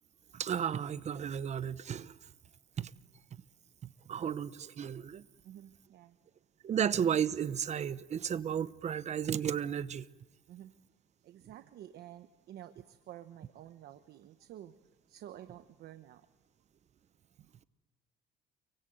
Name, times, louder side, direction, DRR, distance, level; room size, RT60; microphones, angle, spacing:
voice 1, 0.3-2.2 2.8-2.9 4.1-5.2 6.6-10.1, right 8 dB, 40° right, 0.9 m, -33 dB
voice 2, 5.4-6.2 10.5-10.7 11.2-14.7 15.1-16.3 17.4-17.5, right 12 dB, 70° right, 1.2 m, -50 dB
29.5 x 24.0 x 7.9 m
cardioid pair, 110°, 17 cm